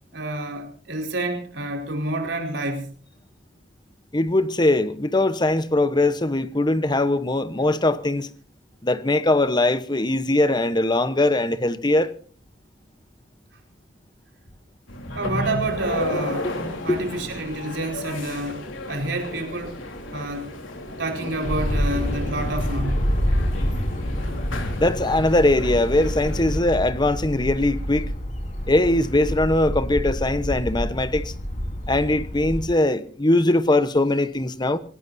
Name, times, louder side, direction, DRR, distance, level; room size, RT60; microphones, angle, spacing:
voice 1, 0.1-2.9 15.1-16.5 16.8-19.8 20.1-20.5 21.0-23.1, right 2 dB, 65° right, 4.7 m, -28 dB
voice 2, 4.1-8.3 8.8-12.1 16.4-16.5 16.9-17.0 24.8-28.1 28.7-31.3 31.9-34.8, left 2 dB, 20° left, 1.0 m, -21 dB
sound 1, 14.9-26.6, left 1 dB, 90° left, 3.7 m, -33 dB
sound 2, 21.4-32.7, equal, 40° left, 4.3 m, -27 dB
27.0 x 18.0 x 2.7 m
head